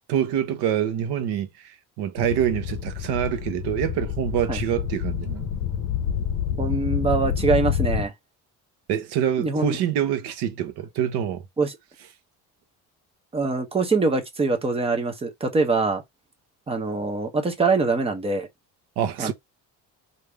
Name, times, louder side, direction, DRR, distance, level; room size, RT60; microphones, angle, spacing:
voice 1, 0.1-5.5 8.9-11.5 19.0-19.3, right 10 dB, 90° right, 1.0 m, -26 dB
sound 1, 2.2-8.1, left 9 dB, 50° left, 0.8 m, -28 dB
voice 2, 6.6-8.1 9.4-9.8 11.6-11.7 13.3-16.0 16.7-18.5 19.2-19.3, right 3 dB, 15° right, 0.7 m, -23 dB
3.3 x 2.7 x 3.4 m
cardioid pair, 170°, 38 cm